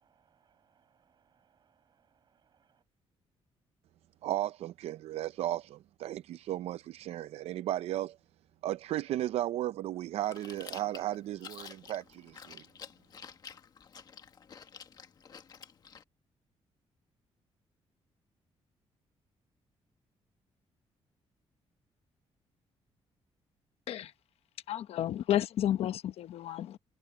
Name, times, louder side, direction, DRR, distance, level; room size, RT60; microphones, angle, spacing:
voice 1, 0.0-2.8, right 8 dB, 45° right, 6.9 m, -71 dB
voice 2, 4.2-8.2 8.6-12.6, right 13 dB, 80° right, 0.5 m, -35 dB
Chewing mastication, 10.2-16.0, left 7 dB, 40° left, 1.5 m, -50 dB
voice 3, 24.7-26.8, left 11 dB, 75° left, 1.0 m, -31 dB
cardioid pair, 170°, 11 cm